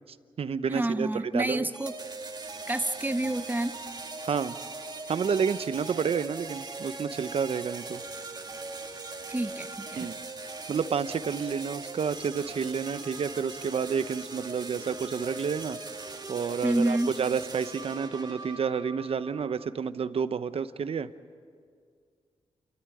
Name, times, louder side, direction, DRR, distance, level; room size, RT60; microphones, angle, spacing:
voice 1, 0.0-1.7 4.2-4.6 5.1-8.0 10.0-10.1 10.7-21.1, right 6 dB, 60° right, 12 dB, 0.9 m, -30 dB
voice 2, 0.7-1.9 2.7-3.7 9.3-10.1 16.6-17.1, right 1 dB, 15° right, 8 dB, 1.2 m, -28 dB
sound 1, 1.7-19.7, right 3 dB, 40° right, 1.8 m, -40 dB
28.0 x 14.0 x 9.2 m, 2.1 s
cardioid pair, 70°, 11 cm